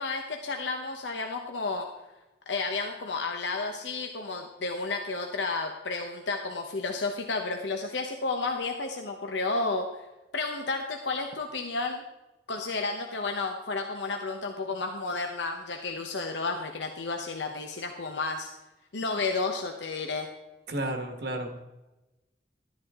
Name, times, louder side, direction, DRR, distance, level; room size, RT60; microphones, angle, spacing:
voice 1, 0.0-1.9 2.5-9.9 10.3-12.0 12.5-18.5 18.9-20.3, left 3 dB, 90° left, 4 dB, 0.9 m, -32 dB
voice 2, 20.7-21.6, right 1 dB, 65° right, 5 dB, 1.4 m, -32 dB
12.5 x 10.5 x 3.7 m, 1.0 s
head